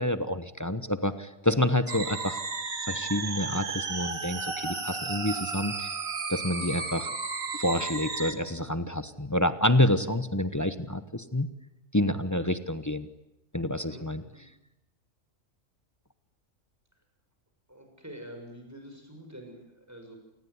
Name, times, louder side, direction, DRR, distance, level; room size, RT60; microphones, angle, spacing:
voice 1, 0.0-2.4 2.9-5.9 6.3-7.1 7.6-11.5 11.9-13.1 13.5-14.2, left 1 dB, 15° left, 11 dB, 1.1 m, -28 dB
sound 1, 1.9-8.3, right 4 dB, 85° right, 2.7 m, -34 dB
voice 2, 13.8-14.4 17.7-20.2, right 1 dB, 10° right, 3 dB, 6.7 m, -46 dB
28.0 x 20.5 x 9.7 m, 0.88 s
omnidirectional pair, 1.4 m